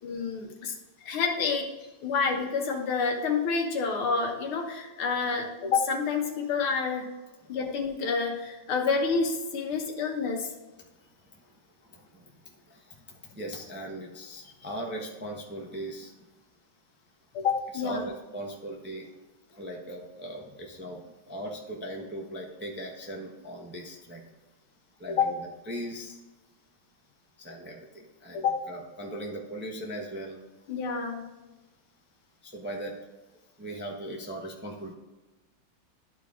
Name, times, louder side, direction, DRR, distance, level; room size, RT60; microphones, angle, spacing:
voice 1, 0.0-0.7 1.0-1.7 2.0-7.1 7.5-10.5 17.3-18.1 25.1-25.3 28.3-28.6 30.7-31.3, left 5 dB, 85° left, 3 dB, 2.1 m, -28 dB
voice 2, 11.8-16.2 17.7-19.1 19.5-24.2 25.0-26.2 27.4-30.4 32.4-32.9 33.6-34.9, right 1 dB, 10° right, -1 dB, 0.6 m, -39 dB
12.0 x 4.6 x 3.6 m, 1.1 s
omnidirectional pair, 2.3 m